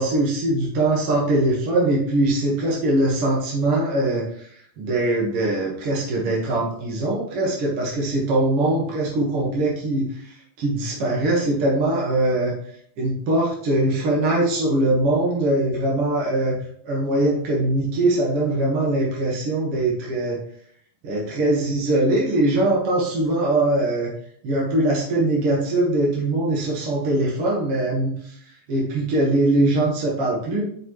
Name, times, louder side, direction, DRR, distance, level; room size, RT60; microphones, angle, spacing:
voice 1, 0.0-12.5 13.0-16.6 16.8-20.4 21.0-24.1 24.4-30.7, right 2 dB, 50° right, -4 dB, 2.0 m, -22 dB
8.8 x 6.1 x 3.1 m, 0.63 s
omnidirectional pair, 4.2 m